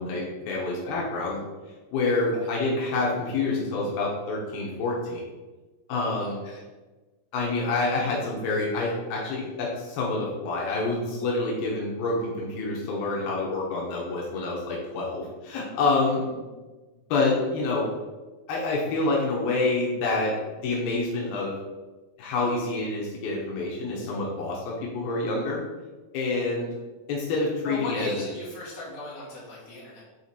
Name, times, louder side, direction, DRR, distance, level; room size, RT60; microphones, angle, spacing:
voice 1, 0.0-1.4 1.9-5.2 5.9-6.4 7.3-16.3 17.1-17.9 18.5-21.6 22.2-25.6 26.1-26.7 27.1-28.1, left 3 dB, 90° left, -3 dB, 2.9 m, -27 dB
voice 2, 6.2-6.6 16.4-16.5 27.6-30.0, left 2 dB, 60° left, -6 dB, 3.3 m, -37 dB
7.0 x 4.1 x 4.3 m, 1.2 s
omnidirectional pair, 4.2 m